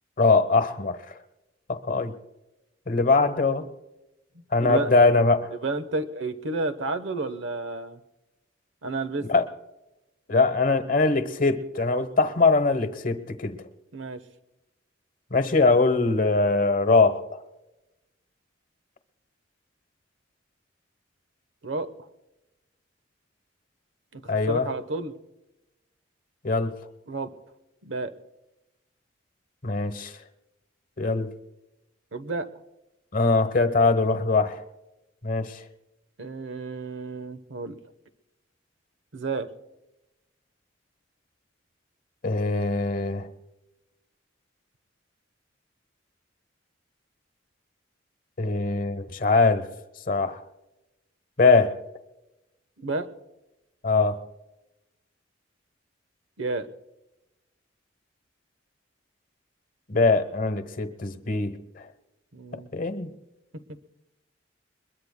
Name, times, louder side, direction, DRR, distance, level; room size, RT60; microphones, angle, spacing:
voice 1, 0.2-1.0 1.7-2.1 2.9-3.6 4.5-5.5 9.3-9.4 10.3-13.6 15.3-17.4 24.3-24.7 26.4-26.7 29.6-30.1 31.0-31.3 33.1-34.6 35.2-35.6 42.2-43.3 48.4-49.7 50.1-50.4 51.4-51.7 53.8-54.2 59.9-61.8 62.7-63.1, left 3 dB, 45° left, 10 dB, 1.0 m, -22 dB
voice 2, 5.6-8.0 8.8-9.3 13.9-14.2 21.6-21.9 24.1-25.2 27.1-27.3 27.8-28.1 32.1-32.5 36.2-37.8 39.1-39.5 52.8-53.1 56.4-56.7 62.3-62.7, right 3 dB, 75° right, 13 dB, 1.0 m, -31 dB
22.0 x 21.5 x 2.2 m, 0.98 s
head